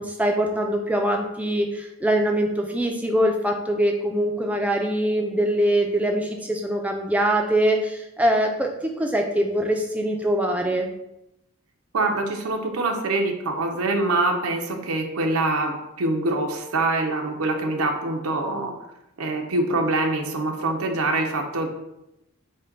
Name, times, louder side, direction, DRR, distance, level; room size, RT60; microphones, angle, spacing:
voice 1, 0.0-10.9, right 1 dB, 5° right, 2 dB, 0.4 m, -23 dB
voice 2, 11.9-18.7 19.2-21.7, right 2 dB, 90° right, 3 dB, 0.6 m, -24 dB
5.3 x 2.2 x 3.9 m, 0.87 s
head